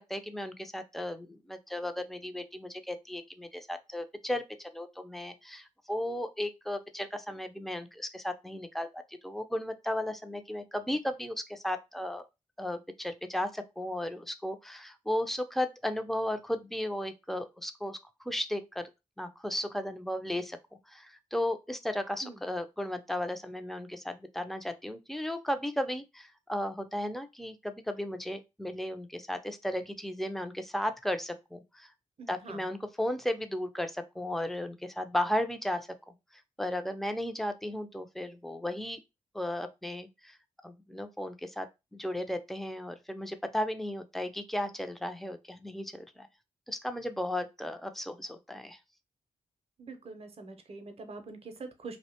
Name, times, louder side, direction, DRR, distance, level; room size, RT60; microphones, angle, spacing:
voice 1, 0.0-12.2 12.6-18.9 19.2-20.6 20.9-31.9 32.3-36.1 36.6-39.0 39.3-40.4 40.6-41.7 41.9-46.3 46.7-48.8, left 1 dB, ahead, 0.4 m, -35 dB
voice 2, 32.2-32.6 49.8-52.0, right 3 dB, 40° right, 0.6 m, -44 dB
2.4 x 2.1 x 2.8 m
supercardioid pair, 45°, 15 cm